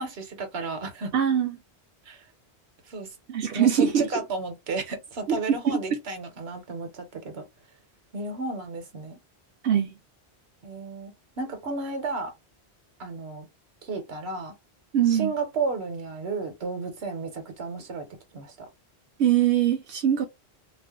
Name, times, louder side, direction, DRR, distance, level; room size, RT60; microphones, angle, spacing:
voice 1, 0.0-1.1 2.1-2.2 2.9-3.1 3.5-7.4 8.1-9.2 10.6-12.3 13.0-13.4 13.8-14.5 15.1-18.1 18.3-18.7, right 3 dB, 70° right, 1.2 m, -33 dB
voice 2, 1.1-1.6 3.3-4.1 5.7-5.8 9.6-9.9 14.9-15.3 19.2-20.3, right 9 dB, 90° right, 0.9 m, -22 dB
2.5 x 2.4 x 3.5 m
omnidirectional pair, 1.1 m